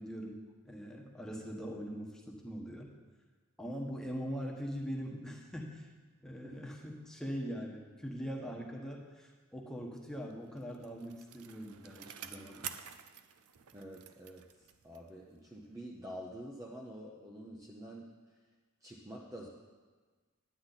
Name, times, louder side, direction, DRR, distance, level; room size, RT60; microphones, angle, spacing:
voice 1, 0.0-2.9 3.6-5.9 6.2-12.7, equal, 5° left, -1 dB, 1.1 m, -42 dB
Bicycle, 10.3-15.2 15.6-15.7, right 9 dB, 85° right, 0.5 m, -49 dB
voice 2, 13.7-14.4 14.8-18.1 18.8-19.5, equal, 15° right, -2 dB, 0.6 m, -47 dB
9.9 x 9.3 x 4.0 m, 1.4 s
head